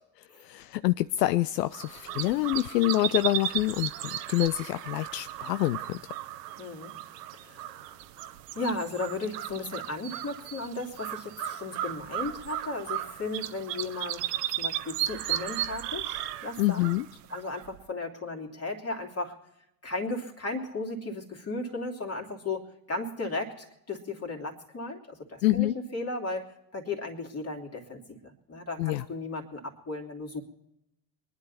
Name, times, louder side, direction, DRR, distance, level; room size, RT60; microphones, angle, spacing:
voice 1, 0.4-6.0 16.6-17.1 25.4-25.7 28.8-29.0, left 17 dB, 75° left, 13 dB, 0.5 m, -26 dB
sound 1, 1.7-17.8, right 13 dB, 75° right, 0.9 m, -35 dB
voice 2, 6.6-6.9 7.3-7.8 8.5-16.9 17.3-19.3 19.8-30.4, left 2 dB, 30° left, 2 dB, 2.9 m, -35 dB
24.0 x 10.5 x 4.2 m, 0.83 s
hypercardioid pair, 60°, 49 cm